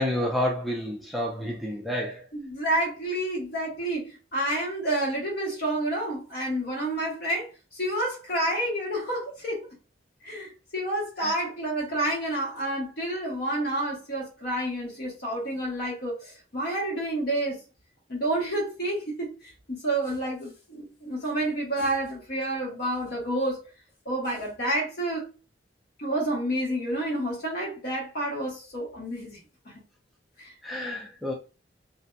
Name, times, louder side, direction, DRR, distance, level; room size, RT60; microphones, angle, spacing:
voice 1, 0.0-2.2 11.2-11.3 30.6-31.3, left 1 dB, ahead, 0.4 m, -29 dB
voice 2, 2.3-9.7 10.2-17.6 18.1-19.3 19.7-23.6 24.0-25.3 26.0-29.4 29.7-29.8 30.4-30.5, right 1 dB, 55° left, 1.3 m, -29 dB
2.6 x 2.6 x 2.2 m
head